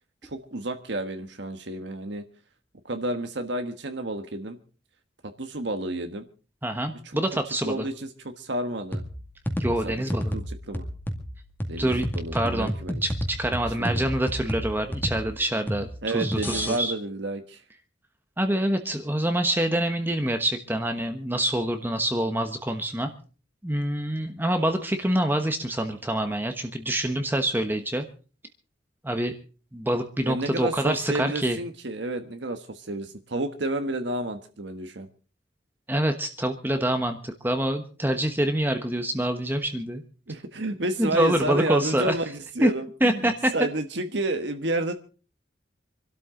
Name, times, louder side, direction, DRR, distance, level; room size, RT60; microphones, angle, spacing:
voice 1, 0.2-2.2 2.8-4.6 5.4-6.3 7.0-7.2 7.6-9.0 9.8-10.0 10.3-10.9 11.7-13.0 13.8-14.1 16.0-17.6 30.3-35.1 40.3-44.9, right 2 dB, 65° right, 7 dB, 1.3 m, -30 dB
voice 2, 6.6-7.9 9.6-10.4 11.8-12.1 12.3-12.7 13.0-16.9 18.4-23.1 23.6-28.1 29.0-29.3 29.7-31.6 35.9-40.0 41.0-42.1 42.6-42.7 43.0-43.5, right 1 dB, 10° right, 6 dB, 1.1 m, -26 dB
sound 1, 8.9-16.8, equal, 10° left, 2.1 m, -31 dB
26.0 x 12.5 x 3.8 m, 0.37 s
head